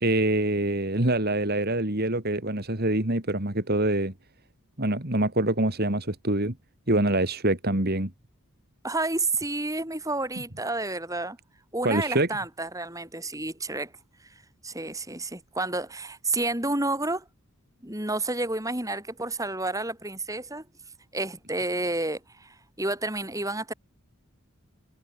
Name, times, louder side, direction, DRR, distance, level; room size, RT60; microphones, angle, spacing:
voice 1, 0.0-4.1 4.8-6.5 6.9-8.1 11.8-12.3, right 1 dB, 45° right, 2.7 m, -25 dB
voice 2, 8.8-11.4 11.7-13.9 14.6-17.3 17.8-20.7 21.1-23.7, right 2 dB, 15° right, 6.0 m, -30 dB
head